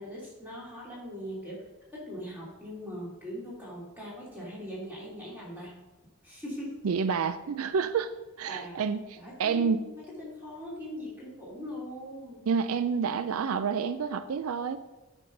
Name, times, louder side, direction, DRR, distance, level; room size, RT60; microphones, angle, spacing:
voice 1, 0.0-1.7 1.9-5.7 6.2-6.8 8.5-8.8 9.2-12.5, equal, 10° right, -6 dB, 3.1 m, -41 dB
voice 2, 6.8-8.1 8.4-9.8 12.5-14.8, right 6 dB, 75° right, 12 dB, 0.4 m, -29 dB
9.3 x 5.5 x 5.2 m, 1.1 s
head